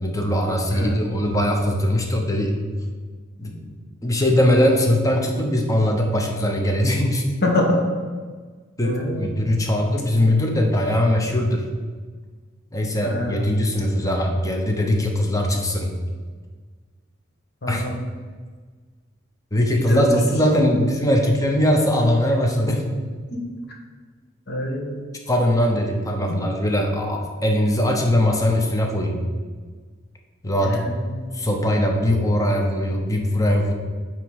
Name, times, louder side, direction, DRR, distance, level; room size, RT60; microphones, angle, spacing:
voice 1, 0.0-2.6 3.4-3.7 4.0-7.2 8.8-11.6 12.7-15.9 17.7-17.8 19.5-22.8 25.3-29.2 30.4-30.8 31.3-33.7, left 1 dB, 20° left, 2 dB, 0.8 m, -21 dB
voice 2, 7.4-7.8 8.8-9.4 13.0-13.6 17.6-17.9 19.7-20.2 22.3-22.4 23.3-23.4 24.5-25.0 26.3-26.4 30.6-31.3, left 1 dB, 55° left, 0 dB, 1.2 m, -25 dB
8.9 x 3.1 x 4.8 m, 1.5 s
head